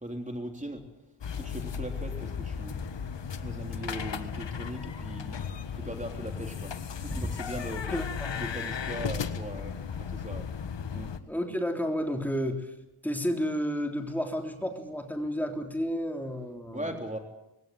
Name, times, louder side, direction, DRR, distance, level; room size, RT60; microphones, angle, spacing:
voice 1, 0.0-0.8 1.4-2.8 3.4-6.7 7.0-7.8 8.4-9.7 10.1-10.5 10.9-11.1 16.7-17.2, right 1 dB, 15° right, 3 dB, 3.6 m, -38 dB
sound 1, 1.2-11.2, left 6 dB, 60° left, 1.4 m, -35 dB
voice 2, 7.9-8.4 11.3-12.7 13.0-16.9, equal, 5° left, 3 dB, 3.6 m, -31 dB
20.5 x 17.5 x 9.4 m, 0.94 s
cardioid pair, 70°, 50 cm